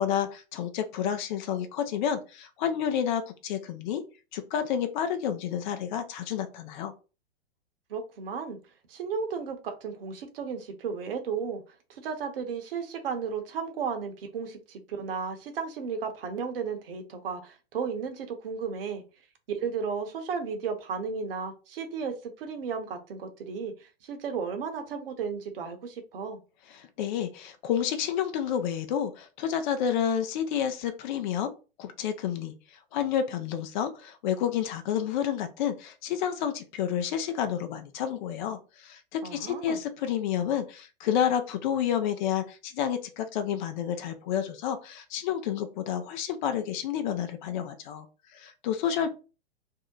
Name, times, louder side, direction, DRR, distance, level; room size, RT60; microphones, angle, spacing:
voice 1, 0.0-4.0 4.3-6.9 26.7-31.5 31.8-32.5 32.9-48.1 48.3-49.1, left 9 dB, 45° left, 8 dB, 0.5 m, -30 dB
voice 2, 7.9-8.6 8.9-11.6 11.9-19.0 19.5-26.4 39.2-39.8, right 6 dB, 60° right, 6 dB, 0.8 m, -34 dB
2.7 x 2.1 x 3.8 m, 0.32 s
figure-of-eight pair, 105°, 32 cm